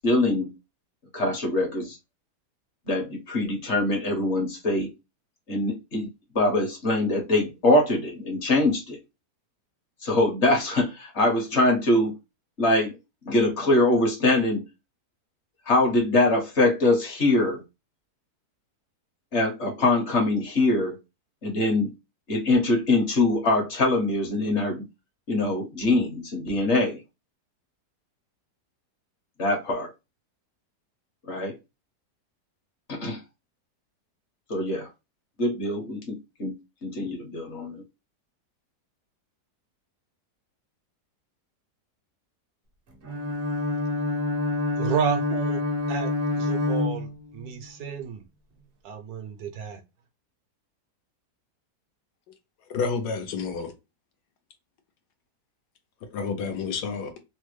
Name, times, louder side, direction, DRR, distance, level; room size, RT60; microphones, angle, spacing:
voice 1, 0.0-0.5 1.1-2.0 2.9-4.9 5.5-6.1 6.3-9.0 10.0-12.1 12.6-12.9 13.3-14.6 15.7-17.6 19.3-20.9 21.4-21.9 22.3-24.8 25.3-27.0 29.4-29.9 31.3-31.5 32.9-33.2 34.5-34.9 35.4-36.6 36.8-37.8, left 2 dB, 50° left, 1.1 m, -23 dB
Bowed string instrument, 43.0-47.6, left 2 dB, 50° right, 0.7 m, -27 dB
voice 2, 44.8-45.6 45.9-48.2 48.8-49.8, right 7 dB, 75° right, 1.1 m, -31 dB
voice 3, 52.7-53.7 56.1-57.1, left 5 dB, 75° left, 1.3 m, -29 dB
3.2 x 2.2 x 3.1 m
omnidirectional pair, 1.8 m